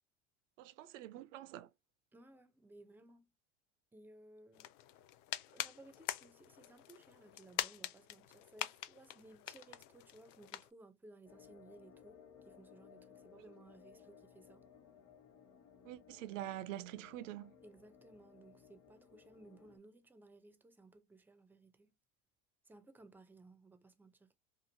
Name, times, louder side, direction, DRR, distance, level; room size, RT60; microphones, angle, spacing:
voice 1, 0.6-1.7 13.4-13.5 15.8-17.6, right 14 dB, 80° right, 0.5 m, -46 dB
voice 2, 2.1-3.3 3.9-4.6 5.5-14.6 17.6-21.9 22.6-24.3, right 2 dB, 5° right, 0.4 m, -60 dB
sound 1, 4.5-10.7, left 13 dB, 75° left, 0.5 m, -45 dB
sound 2, 11.2-19.8, left 7 dB, 40° left, 1.1 m, -61 dB
2.9 x 2.4 x 2.5 m
hypercardioid pair, 95°, 37 cm